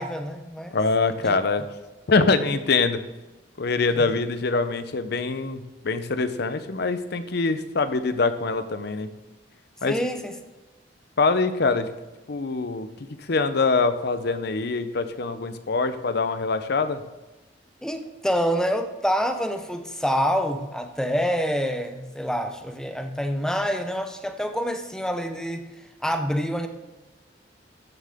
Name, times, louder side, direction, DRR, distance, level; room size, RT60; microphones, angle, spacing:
voice 1, 0.0-0.8 1.2-1.3 4.0-4.1 9.9-10.3 17.8-25.6 26.0-26.7, equal, 5° left, 6 dB, 0.8 m, -27 dB
voice 2, 0.7-1.6 2.1-3.0 3.6-9.1 9.8-10.0 11.2-11.9 12.3-17.0, left 4 dB, 60° left, 11 dB, 0.7 m, -24 dB
14.0 x 7.5 x 3.6 m, 1.1 s
head